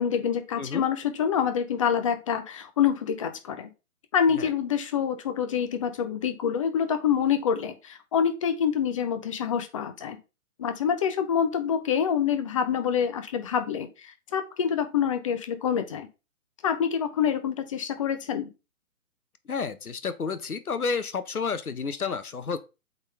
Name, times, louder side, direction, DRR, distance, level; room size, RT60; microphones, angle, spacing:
voice 1, 0.0-3.7 4.1-10.2 10.6-16.1 16.6-18.5, left 8 dB, 25° left, 0.6 m, -26 dB
voice 2, 19.5-22.6, left 5 dB, 85° left, 1.1 m, -30 dB
8.0 x 3.9 x 3.4 m
figure-of-eight pair, 140°, 42 cm